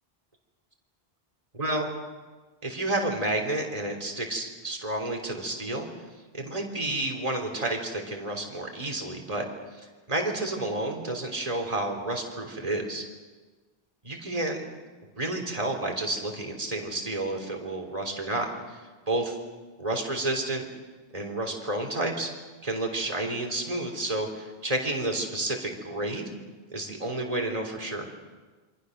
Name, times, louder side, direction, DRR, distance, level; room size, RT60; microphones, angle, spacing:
voice 1, 1.5-1.9 2.6-5.9 6.3-9.4 9.7-13.0 14.0-14.6 15.2-19.4 19.8-20.7 21.1-22.3 22.6-26.3 26.7-28.1, right 2 dB, 35° right, 2 dB, 3.6 m, -30 dB
27.5 x 25.0 x 6.6 m, 1.3 s
omnidirectional pair, 1.0 m